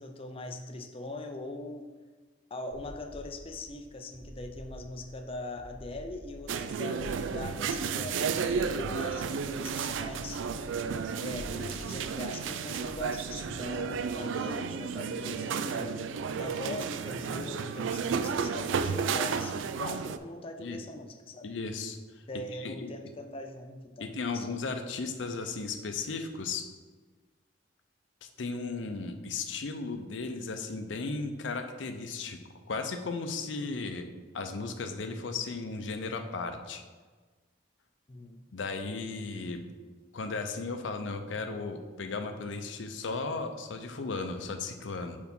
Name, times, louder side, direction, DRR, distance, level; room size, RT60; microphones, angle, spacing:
voice 1, 0.0-1.9 2.5-10.5 11.2-16.1 16.4-21.5 22.3-24.6 28.8-28.9 38.1-38.4, left 2 dB, 30° left, 5 dB, 0.5 m, -41 dB
sound 1, 2.7-14.1, equal, 20° right, 0.7 m, -48 dB
sound 2, 6.5-20.2, right 6 dB, 85° right, 0.4 m, -32 dB
voice 2, 21.4-22.0 22.5-22.9 24.0-26.6 28.2-32.4 32.7-34.1 34.3-36.8 38.5-39.6 40.1-45.2, left 4 dB, 75° left, 6 dB, 0.6 m, -35 dB
4.8 x 4.6 x 5.3 m, 1.4 s
head